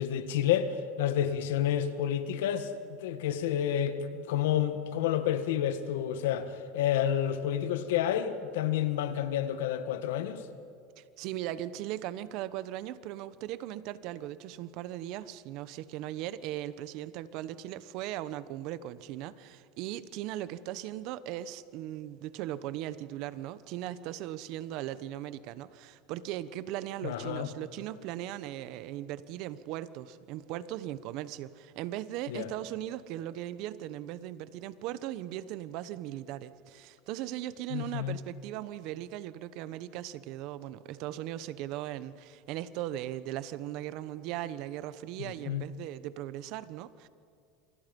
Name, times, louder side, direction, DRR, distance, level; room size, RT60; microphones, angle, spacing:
voice 1, 0.0-10.4 27.0-27.5 32.3-32.5 37.7-38.2 45.2-45.6, left 10 dB, 90° left, 1.7 m, -30 dB
voice 2, 11.0-47.1, right 13 dB, 60° right, 1.1 m, -38 dB
29.0 x 25.0 x 5.4 m
supercardioid pair, 130°, 0 cm